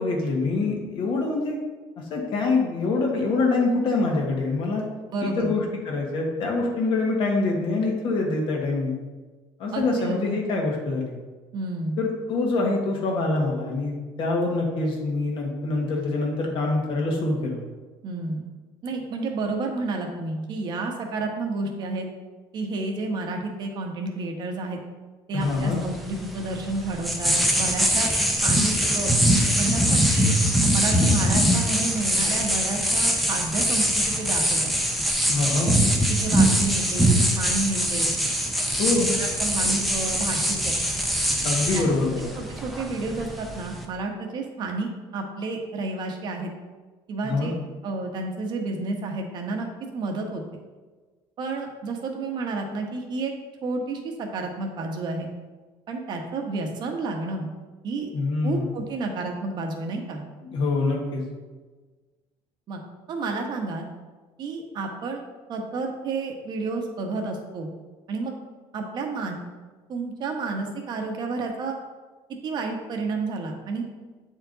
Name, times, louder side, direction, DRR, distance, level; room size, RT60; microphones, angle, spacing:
voice 1, 0.0-1.6 2.1-4.9 5.2-8.9 9.6-11.1 12.0-17.6 25.3-25.8 35.3-35.7 38.8-39.1 41.4-42.3 47.2-47.5 58.1-58.7 60.5-61.2, left 3 dB, 50° left, 0 dB, 1.5 m, -25 dB
voice 2, 5.1-5.5 9.7-10.2 11.5-12.0 18.0-18.4 18.8-22.1 22.5-24.8 25.3-28.1 28.4-29.1 29.6-30.3 30.7-34.7 35.6-35.9 36.2-38.1 38.9-40.8 41.7-41.9 42.3-46.5 47.1-47.5 47.8-50.4 51.4-53.3 53.6-55.3 55.9-57.5 57.8-58.1 58.4-60.2 62.7-62.8 63.1-63.9 64.4-65.2 65.5-67.7 68.1-68.3 68.7-69.4 69.9-71.8 72.4-73.8, right 3 dB, 45° right, 2 dB, 1.1 m, -30 dB
sound 1, 25.4-43.9, equal, ahead, 0.6 m, -23 dB
8.6 x 4.6 x 3.9 m, 1.3 s
cardioid pair, 160°, 11 cm